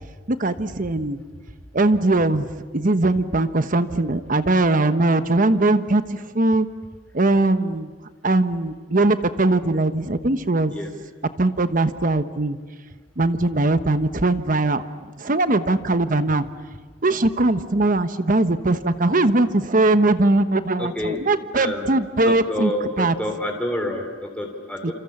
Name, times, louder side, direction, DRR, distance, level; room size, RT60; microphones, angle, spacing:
voice 1, 0.3-1.2 1.7-6.7 7.1-7.9 8.2-10.7 11.4-12.6 13.2-16.4 17.0-22.7 23.0-23.1 24.8-24.9, right 2 dB, 50° right, 10 dB, 1.2 m, -20 dB
voice 2, 20.8-21.2 21.5-24.9, left 1 dB, 5° left, 2 dB, 3.8 m, -28 dB
28.0 x 27.5 x 7.2 m, 1.4 s
head